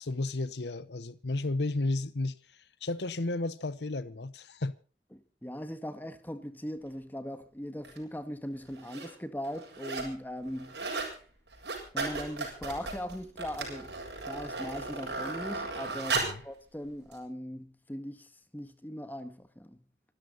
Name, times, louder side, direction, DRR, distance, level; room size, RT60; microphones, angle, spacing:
voice 1, 0.0-4.8 16.1-16.4, left 2 dB, 75° left, 0.9 m, -33 dB
voice 2, 5.1-10.8 11.9-14.0 14.3-19.8, equal, 10° left, 1.6 m, -40 dB
sound 1, 7.8-8.0 8.7-9.1 9.4-10.2 10.5-11.1 11.5-16.5 17.1-17.2, right 3 dB, 75° right, 7.8 m, -36 dB
26.5 x 13.0 x 4.0 m
head